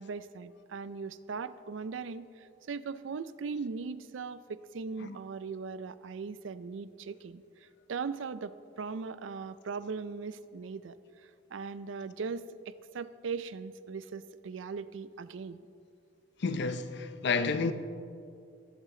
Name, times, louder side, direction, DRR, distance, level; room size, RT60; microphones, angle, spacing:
voice 1, 0.0-7.4 7.9-10.9 11.5-15.7, right 5 dB, 90° right, 0.4 m, -39 dB
voice 2, 16.4-17.7, left 4 dB, 65° left, 0.6 m, -30 dB
20.0 x 8.1 x 3.8 m
head